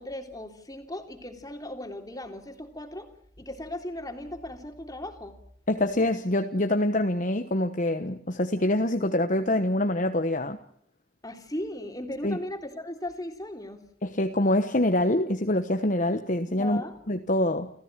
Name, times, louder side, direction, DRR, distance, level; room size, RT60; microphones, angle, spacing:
voice 1, 0.0-3.1 3.4-5.4 11.2-13.8 16.5-17.0, left 1 dB, 20° left, 5 dB, 3.2 m, -37 dB
voice 2, 5.7-10.6 12.2-12.4 14.0-16.8 17.1-17.7, left 1 dB, 40° left, 7 dB, 1.2 m, -25 dB
29.5 x 15.0 x 9.0 m, 0.68 s
head